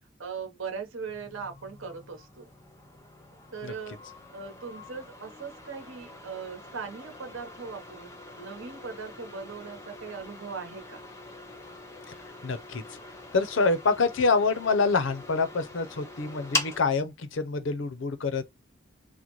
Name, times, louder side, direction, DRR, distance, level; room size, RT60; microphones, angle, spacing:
voice 1, 0.2-2.5 3.5-4.0 4.3-11.0, right 5 dB, 75° right, 0.9 m, -39 dB
sound 1, 1.1-16.8, left 2 dB, 15° left, 0.5 m, -41 dB
voice 2, 12.4-12.8 13.3-18.5, left 4 dB, 65° left, 0.6 m, -26 dB
3.8 x 2.1 x 3.0 m
head